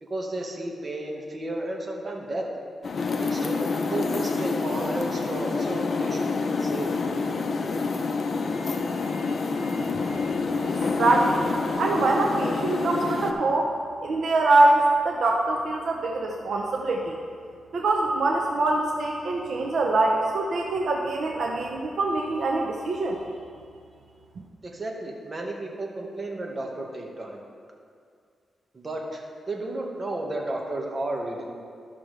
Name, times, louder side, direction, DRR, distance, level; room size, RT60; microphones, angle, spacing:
voice 1, 0.0-2.5 3.2-6.9 24.6-27.4 28.7-31.5, right 2 dB, 35° right, -1 dB, 1.4 m, -33 dB
sound 1, 2.8-13.3, left 4 dB, 55° left, 0.7 m, -27 dB
voice 2, 11.0-13.7 14.0-17.2 17.7-23.2, right 2 dB, 70° right, 0 dB, 0.7 m, -24 dB
13.5 x 6.0 x 3.3 m, 2.2 s
cardioid pair, 95°, 0 cm